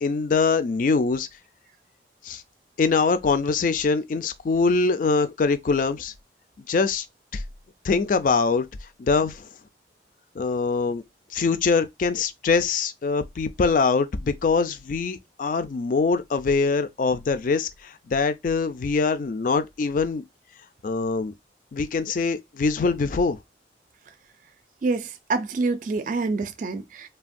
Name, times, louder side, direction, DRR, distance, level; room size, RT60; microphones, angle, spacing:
voice 1, 0.0-1.3 2.2-2.4 2.8-6.1 6.7-7.1 7.3-7.4 7.8-8.7 9.0-9.5 10.4-11.0 11.3-20.2 20.8-21.3 21.7-23.4, left 4 dB, 50° left, 0.4 m, -23 dB
voice 2, 24.8-27.1, right 3 dB, 45° right, 0.3 m, -27 dB
3.2 x 2.1 x 2.5 m
head